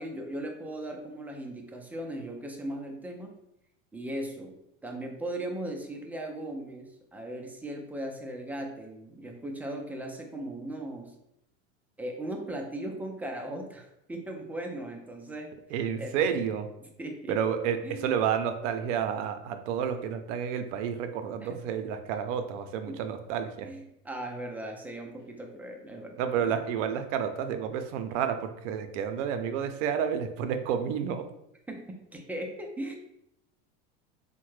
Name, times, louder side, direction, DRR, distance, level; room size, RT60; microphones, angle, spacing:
voice 1, 0.0-3.4 3.9-4.6 4.8-11.1 12.0-15.5 16.0-16.3 17.0-17.3 17.8-18.1 21.4-21.5 22.9-23.0 23.6-26.6 31.7-33.0, right 1 dB, 5° right, 2 dB, 0.3 m, -38 dB
voice 2, 15.7-16.7 17.3-23.7 26.2-31.3, right 8 dB, 75° right, 8 dB, 0.6 m, -30 dB
3.6 x 2.2 x 3.1 m, 0.80 s
supercardioid pair, 105°, 37 cm